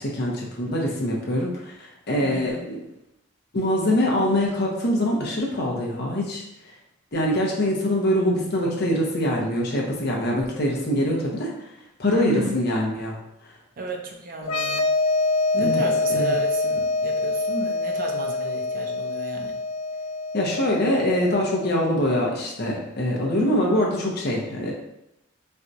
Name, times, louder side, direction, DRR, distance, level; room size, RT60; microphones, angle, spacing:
voice 1, 0.0-2.8 3.5-6.4 7.1-11.5 12.0-13.2 15.6-15.8 16.1-16.4 20.3-24.7, left 1 dB, 50° left, -1 dB, 0.8 m, -24 dB
voice 2, 2.2-2.7 12.1-12.6 13.8-14.9 15.5-19.5 23.4-23.7, right 2 dB, 45° right, 2 dB, 0.5 m, -32 dB
sound 1, 14.4-21.9, left 2 dB, 85° left, 0.4 m, -25 dB
4.3 x 2.3 x 2.6 m, 0.84 s
head